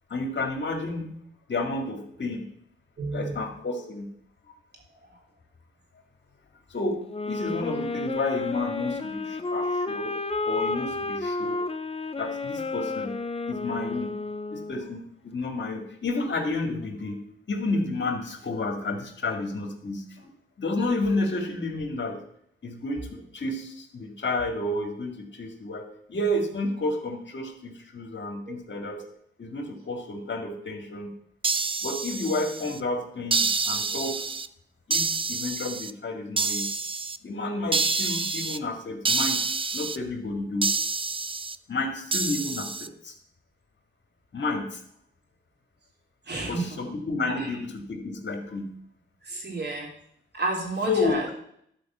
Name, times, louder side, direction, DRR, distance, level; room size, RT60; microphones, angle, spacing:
voice 1, 0.1-1.1 1.5-2.4 3.1-4.1 6.7-7.0 7.3-10.2 10.5-11.6 12.2-13.2 13.5-14.1 14.5-17.2 17.5-20.3 20.6-22.2 22.6-29.0 29.4-31.1 31.8-34.3 34.9-36.7 37.2-40.7 41.7-43.1 44.3-44.8 46.5-48.7 50.8-51.3, left 2 dB, 60° left, 4 dB, 2.1 m, -31 dB
voice 2, 3.0-3.3 28.5-28.6 46.3-46.5 47.3-47.4 49.3-49.9 50.3-51.2, right 2 dB, 55° right, -1 dB, 3.5 m, -30 dB
sound 1, 7.1-14.9, left 3 dB, 30° left, 0.8 m, -31 dB
sound 2, 31.4-32.8 33.3-34.5 34.9-35.9 36.4-37.2 37.7-38.6 39.0-40.0 40.6-41.6 42.1-42.9, right 4 dB, 25° right, 0.5 m, -27 dB
12.0 x 5.1 x 7.3 m, 0.69 s
cardioid pair, 80°, 21 cm